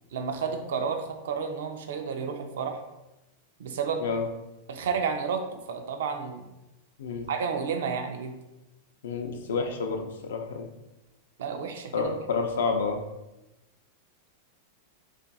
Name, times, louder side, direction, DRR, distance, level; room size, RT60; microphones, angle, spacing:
voice 1, 0.1-2.8 3.6-4.1 4.7-6.5 7.3-8.3 11.4-12.1, right 6 dB, 80° right, 5 dB, 0.4 m, -31 dB
voice 2, 9.0-10.7 11.9-13.0, left 4 dB, 90° left, 4 dB, 0.5 m, -29 dB
2.4 x 2.2 x 3.9 m, 0.97 s
supercardioid pair, 140°, 0 cm